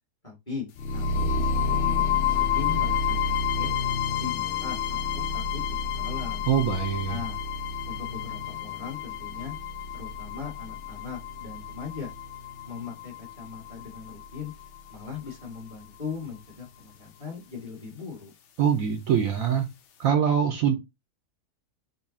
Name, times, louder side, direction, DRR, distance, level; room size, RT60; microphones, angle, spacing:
voice 1, 0.2-3.7 4.2-6.4 7.1-7.4 7.8-9.5 9.9-12.1 12.6-14.5 14.9-18.3, left 5 dB, 25° left, 1.1 m, -39 dB
sound 1, 0.8-14.8, left 6 dB, 85° left, 0.6 m, -29 dB
voice 2, 6.5-7.2 18.6-19.7 20.0-20.8, right 8 dB, 70° right, 0.9 m, -23 dB
3.9 x 2.0 x 3.6 m
omnidirectional pair, 1.8 m